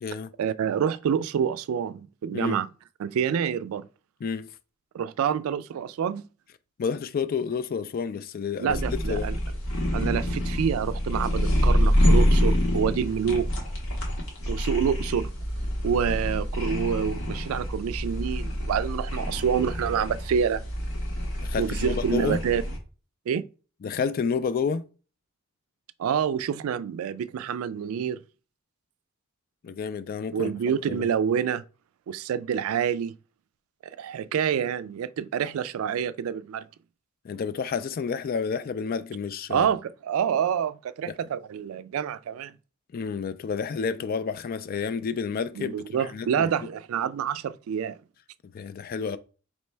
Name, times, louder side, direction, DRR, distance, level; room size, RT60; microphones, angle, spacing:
voice 1, 0.4-2.7 3.0-3.9 4.9-6.3 8.6-9.4 9.9-13.5 14.5-15.3 15.8-20.6 21.5-22.6 23.3-23.5 26.0-28.2 30.3-31.6 32.1-33.1 33.8-36.6 39.5-42.5 45.6-48.0, right 8 dB, 80° right, 0.3 m, -27 dB
voice 2, 6.8-9.3 21.4-22.4 23.8-24.8 29.6-30.5 30.9-31.1 37.2-39.7 41.1-41.2 42.9-46.5 48.4-49.2, left 6 dB, 45° left, 0.3 m, -30 dB
sound 1, 8.7-22.8, equal, 80° left, 1.4 m, -26 dB
4.3 x 3.0 x 3.2 m
head